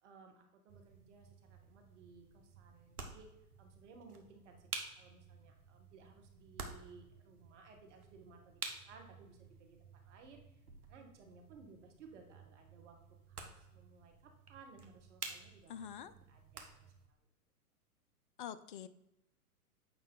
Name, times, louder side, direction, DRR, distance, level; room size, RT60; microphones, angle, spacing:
voice 1, 0.0-3.3 3.6-4.7 5.0-8.6 8.9-9.8 10.0-10.4 10.9-13.0 13.3-16.9, right 4 dB, 50° right, 3 dB, 1.7 m, -59 dB
sound 1, 0.7-17.1, right 4 dB, 70° right, 1.6 m, -51 dB
voice 2, 15.7-16.1 18.4-18.9, left 9 dB, 35° left, 14 dB, 0.4 m, -45 dB
8.7 x 5.4 x 4.0 m, 0.87 s
figure-of-eight pair, 110°, 46 cm